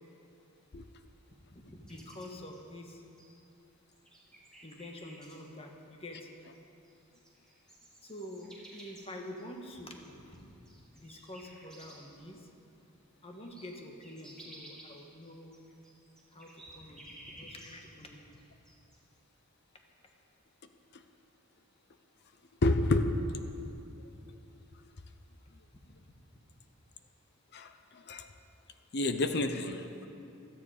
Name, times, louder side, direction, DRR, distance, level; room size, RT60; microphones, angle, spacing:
voice 1, 1.5-3.0 4.6-6.3 8.0-10.5 10.9-12.4 13.2-15.6 16.3-18.2 26.0-26.1, left 1 dB, 30° left, 2 dB, 1.5 m, -47 dB
sound 1, 1.9-3.5 3.9-5.4 6.5-6.6 6.8-12.2 12.6-12.7 13.0-18.1 18.3-19.0, right 1 dB, 5° left, 3.0 m, -54 dB
voice 2, 22.6-23.1 27.5-28.3 28.9-30.1, left 2 dB, 50° left, 8 dB, 0.7 m, -30 dB
16.5 x 13.5 x 5.0 m, 2.9 s
head